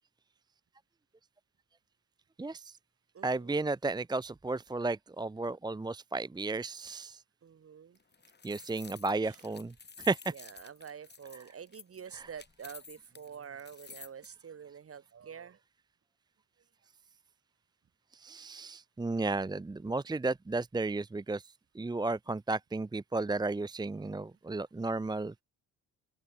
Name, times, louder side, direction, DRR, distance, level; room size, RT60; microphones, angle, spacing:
voice 1, 2.4-2.7 3.2-7.2 8.4-10.3 12.1-12.3 18.1-25.4, right 3 dB, 15° right, 0.8 m, -34 dB
voice 2, 3.1-3.6 7.4-8.0 9.2-9.4 10.3-15.6, right 7 dB, 50° right, 5.4 m, -47 dB
sound 1, 7.9-14.3, left 5 dB, 35° left, 5.2 m, -52 dB
open air
cardioid pair, 90°, 30 cm